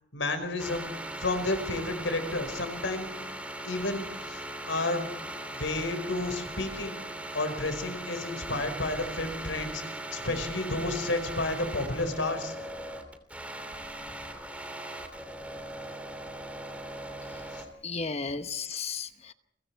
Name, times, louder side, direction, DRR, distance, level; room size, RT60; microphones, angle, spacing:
voice 1, 0.1-0.9 1.2-3.1 3.6-5.1 5.5-7.0 7.3-9.8 10.1-12.5 17.5-17.6, left 2 dB, 85° left, 8 dB, 4.9 m, -31 dB
sound 1, 0.6-17.6, right 1 dB, 5° right, 2.7 m, -39 dB
voice 2, 17.8-19.3, left 5 dB, 35° left, 10 dB, 1.0 m, -34 dB
30.0 x 23.5 x 4.7 m, 0.78 s
head